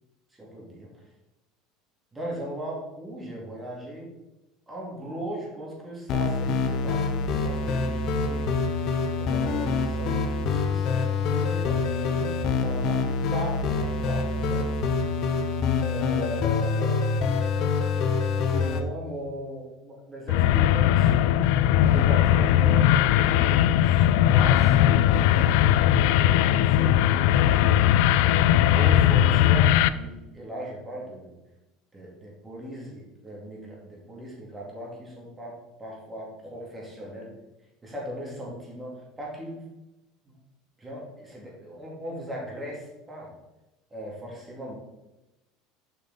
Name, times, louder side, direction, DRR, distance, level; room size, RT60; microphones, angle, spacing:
voice 1, 0.4-0.9 2.1-4.1 4.7-8.5 9.2-14.7 15.9-17.0 18.5-21.3 21.8-25.4 26.6-28.1 28.7-31.3 31.9-37.3 37.8-39.7 40.2-40.3 40.8-43.4 43.9-44.8, equal, 15° right, -3 dB, 2.4 m, -38 dB
sound 1, 6.1-18.8, left 4 dB, 50° left, 0.8 m, -26 dB
sound 2, 20.3-29.9, left 11 dB, 70° left, 0.3 m, -19 dB
7.4 x 5.4 x 4.0 m, 1.0 s
supercardioid pair, 135°, 0 cm